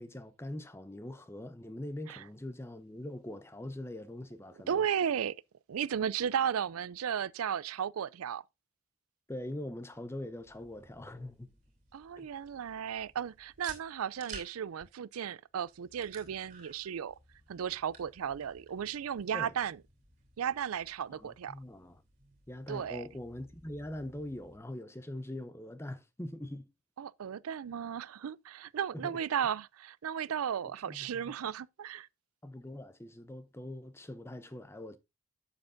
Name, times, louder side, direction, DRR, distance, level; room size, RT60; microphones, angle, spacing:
voice 1, 0.0-4.8 9.3-11.5 12.2-12.3 19.3-19.5 21.1-22.0 22.5-26.7 28.9-29.2 30.9-31.3 32.4-35.0, left 1 dB, 10° left, 0.6 m, -42 dB
voice 2, 4.7-5.4 5.7-8.4 11.9-17.2 17.5-19.8 20.4-21.6 22.7-23.0 27.0-32.1, right 8 dB, 90° right, 0.4 m, -35 dB
sound 1, 10.3-24.6, right 4 dB, 35° right, 2.7 m, -55 dB
11.5 x 7.9 x 2.6 m
head